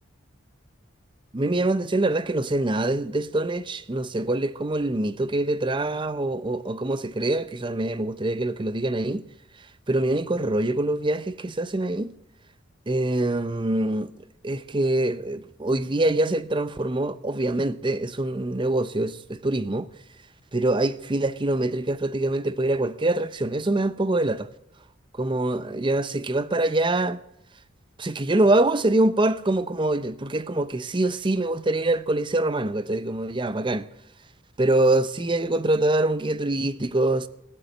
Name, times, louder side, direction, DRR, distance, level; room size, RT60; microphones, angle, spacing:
voice 1, 1.3-9.2 9.9-12.1 12.9-14.1 14.4-19.9 20.5-24.5 25.1-27.2 28.0-33.9 34.6-37.3, right 2 dB, 25° right, 0.6 m, -24 dB
17.5 x 8.3 x 9.1 m
head